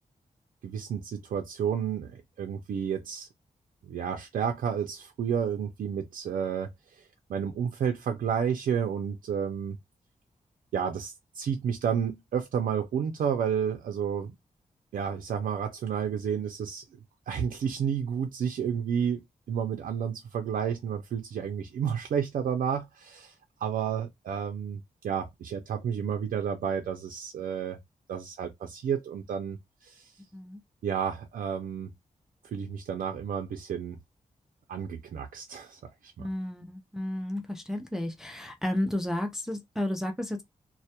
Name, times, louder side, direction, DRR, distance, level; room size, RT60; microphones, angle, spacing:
voice 1, 0.6-3.3 3.8-9.8 10.7-14.3 14.9-16.8 17.3-23.3 23.6-27.8 28.1-30.1 30.8-31.9 32.4-34.0 34.7-36.3, right 7 dB, 75° right, 0.4 m, -31 dB
voice 2, 36.2-40.4, left 1 dB, 5° right, 0.3 m, -32 dB
2.1 x 2.1 x 2.7 m
wide cardioid pair, 145°, 14 cm